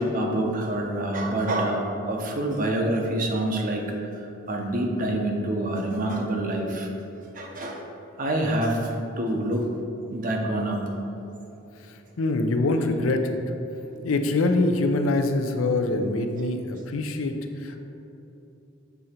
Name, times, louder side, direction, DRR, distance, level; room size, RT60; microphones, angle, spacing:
voice 1, 0.0-6.9 7.3-7.8 8.2-9.7 10.1-10.8, right 1 dB, 40° right, 2 dB, 0.7 m, -26 dB
voice 2, 11.9-13.4 14.0-17.8, left 2 dB, 85° left, 6 dB, 0.5 m, -24 dB
6.9 x 3.8 x 4.3 m, 2.9 s
head